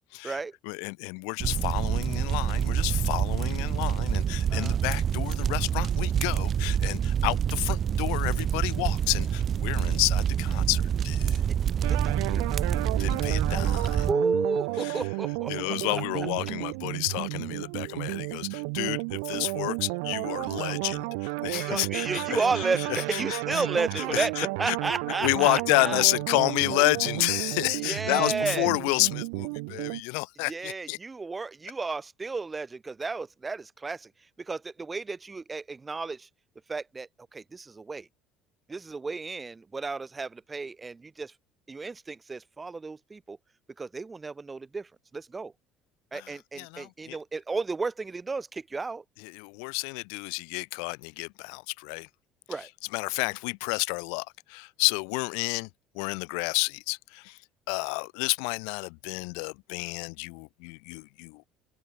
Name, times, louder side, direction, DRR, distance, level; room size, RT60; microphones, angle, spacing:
voice 1, 0.1-11.4 13.0-14.1 14.8-15.0 15.5-23.6 24.0-24.8 25.2-31.0 46.1-47.2 49.2-52.1 52.9-55.7 55.9-57.4 57.7-61.4, left 40 dB or more, 85° left, 3.7 m, -30 dB
sound 1, 1.4-14.1, right 8 dB, 45° right, 3.0 m, -27 dB
sound 2, 11.8-30.0, right 33 dB, 90° right, 3.8 m, -32 dB
voice 2, 11.9-12.6 14.1-16.0 21.5-26.0 27.8-28.7 30.5-34.1 34.4-36.3 36.7-38.1 38.7-41.3 41.7-43.4 43.8-45.5 46.1-49.0 52.5-52.7, right 4 dB, 20° right, 2.4 m, -32 dB
supercardioid pair, 95°, 0 cm